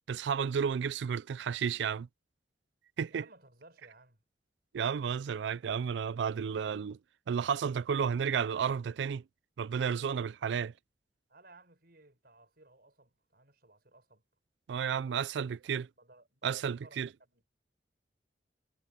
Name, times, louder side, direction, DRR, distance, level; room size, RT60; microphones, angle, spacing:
voice 1, 0.1-2.1 3.0-3.2 4.7-7.0 7.3-9.2 9.6-10.7 14.7-15.9 16.4-17.1, right 7 dB, 85° right, 0.4 m, -32 dB
voice 2, 3.1-4.2 11.3-14.2 14.9-15.3 15.6-17.5, right 2 dB, 60° right, 6.3 m, -59 dB
head